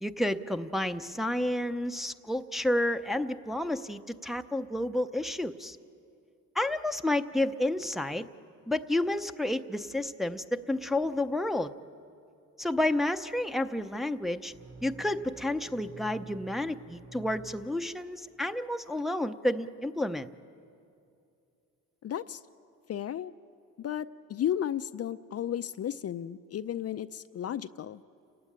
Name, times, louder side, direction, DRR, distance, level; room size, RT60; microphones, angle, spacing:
voice 1, 0.0-5.8 6.5-8.3 8.7-11.7 12.6-14.5 14.8-20.3, left 1 dB, ahead, 7 dB, 0.6 m, -30 dB
sound 1, 14.5-18.3, right 3 dB, 45° right, 3.5 m, -49 dB
voice 2, 22.0-22.4 22.9-23.3 23.8-28.0, left 10 dB, 50° left, 11 dB, 0.5 m, -34 dB
29.0 x 15.5 x 10.0 m, 2.6 s
cardioid pair, 120°, 32 cm